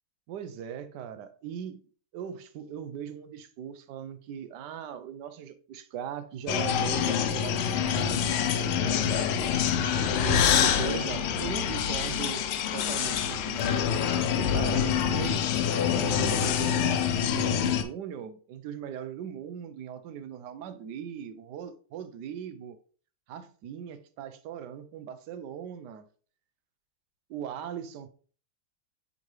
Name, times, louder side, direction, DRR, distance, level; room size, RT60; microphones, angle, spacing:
voice 1, 0.3-1.8 2.1-12.4 12.7-15.4 15.9-22.8 23.3-26.1 27.3-28.1, right 8 dB, 70° right, 1.0 m, -39 dB
sound 1, 6.5-17.8, left 8 dB, 90° left, 1.6 m, -26 dB
9.2 x 3.8 x 3.1 m
omnidirectional pair, 2.4 m